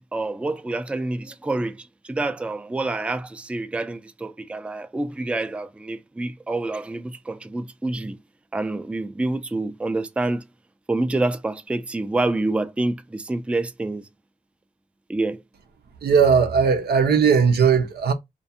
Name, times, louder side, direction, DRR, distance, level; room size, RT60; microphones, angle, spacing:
voice 1, 0.0-8.2 8.5-10.4 10.9-14.1 15.1-15.4, right 2 dB, 5° right, 0.3 m, -27 dB
voice 2, 16.0-18.1, right 6 dB, 90° right, 0.6 m, -18 dB
2.4 x 2.2 x 2.6 m
cardioid pair, 75°, 16 cm